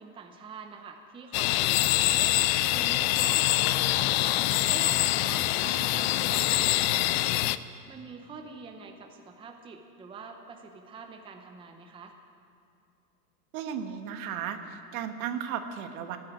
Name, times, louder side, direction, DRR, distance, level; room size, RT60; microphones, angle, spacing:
voice 1, 0.0-2.3 2.7-7.6 7.9-12.1, right 4 dB, 10° right, 4 dB, 0.7 m, -45 dB
sound 1, 1.3-7.6, left 16 dB, 45° left, 0.4 m, -25 dB
voice 2, 13.5-16.2, right 8 dB, 65° right, 7 dB, 1.4 m, -35 dB
13.0 x 8.9 x 9.9 m, 2.4 s
supercardioid pair, 130°, 46 cm